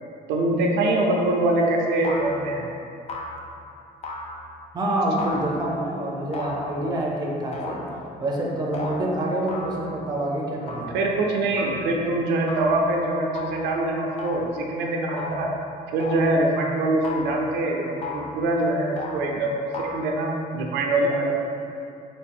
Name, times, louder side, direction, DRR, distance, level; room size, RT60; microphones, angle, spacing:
voice 1, 0.3-2.6 10.9-15.5 15.9-21.4, right 2 dB, 85° right, 0 dB, 0.5 m, -24 dB
sound 1, 1.3-1.6 2.0-2.6 3.1-3.6 4.0-4.6 5.2-5.8 6.3-7.0 7.5-8.1 8.7-9.0 9.5-10.0 10.7-11.0 11.6-11.9 12.5-12.9 13.3-13.7 14.2-14.6 15.2-15.5 16.0-16.4 17.0-17.5 18.0-18.4 18.9-19.2 19.7-20.0, left 3 dB, 40° left, 0.4 m, -35 dB
voice 2, 4.7-7.8 8.2-11.0, right 1 dB, 25° right, -2 dB, 0.6 m, -26 dB
3.5 x 2.5 x 3.4 m, 2.6 s
cardioid pair, 110°, 17 cm